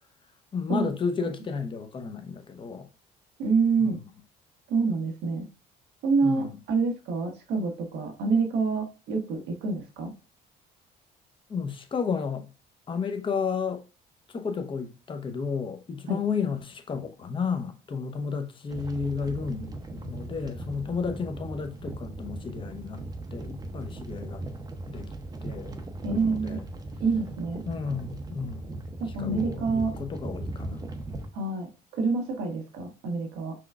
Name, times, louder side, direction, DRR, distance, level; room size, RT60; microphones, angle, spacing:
voice 1, 0.5-2.9 3.8-4.0 6.2-6.6 11.5-12.5 12.9-13.8 14.3-23.0 23.3-24.5 24.9-25.1 25.4-25.8 26.1-26.7 27.7-28.7 29.2-30.8, left 5 dB, 30° left, 0.7 m, -32 dB
voice 2, 3.4-4.0 4.7-5.5 6.0-10.1 16.1-16.2 26.0-26.6 27.0-27.6 29.0-29.9 31.3-31.7 32.0-33.5, right 4 dB, 85° right, 1.1 m, -27 dB
sound 1, 18.7-31.3, right 2 dB, 25° right, 0.6 m, -38 dB
5.8 x 2.3 x 2.3 m
cardioid pair, 110°, 17 cm